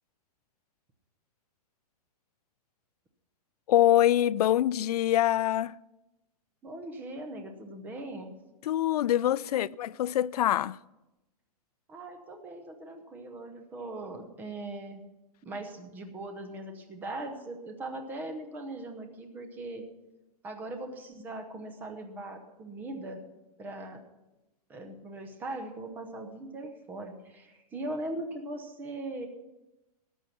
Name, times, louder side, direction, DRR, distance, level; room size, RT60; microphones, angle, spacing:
voice 1, 3.7-5.7 8.6-10.8, left 12 dB, 75° left, 0.4 m, -24 dB
voice 2, 6.6-8.3 9.4-9.7 11.9-15.0 15.4-19.8 20.4-23.2 23.6-24.0 24.7-29.3, right 2 dB, 10° right, 0.8 m, -40 dB
13.5 x 9.3 x 5.8 m
hypercardioid pair, 175°, 20 cm